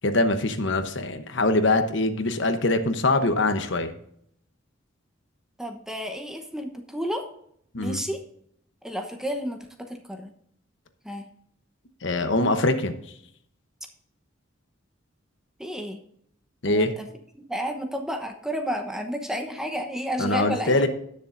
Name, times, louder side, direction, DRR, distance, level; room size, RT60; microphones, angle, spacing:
voice 1, 0.0-3.9 7.7-8.0 12.0-12.9 16.6-16.9 20.2-20.9, left 2 dB, 60° left, 8 dB, 1.0 m, -23 dB
voice 2, 5.6-7.2 7.8-8.2 8.8-10.3 11.0-11.2 15.6-16.0 16.7-17.1 17.5-20.8, equal, 5° right, 5 dB, 0.9 m, -31 dB
18.0 x 6.8 x 2.6 m, 0.70 s
head